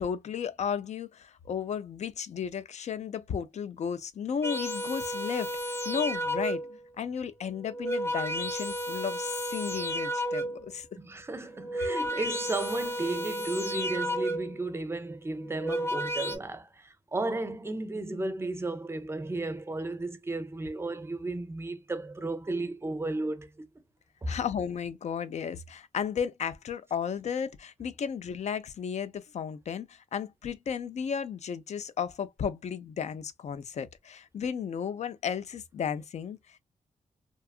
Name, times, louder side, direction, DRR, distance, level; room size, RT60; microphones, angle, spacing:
voice 1, 0.0-6.6 7.0-10.9 24.3-36.6, left 7 dB, 60° left, 0.4 m, -34 dB
sound 1, 4.4-6.8 7.6-10.7 11.5-14.7 15.4-16.4, equal, 20° left, 0.6 m, -32 dB
voice 2, 11.0-23.5 24.2-24.4, right 2 dB, 20° right, 0.5 m, -34 dB
2.8 x 2.3 x 2.3 m
wide cardioid pair, 105°, 13 cm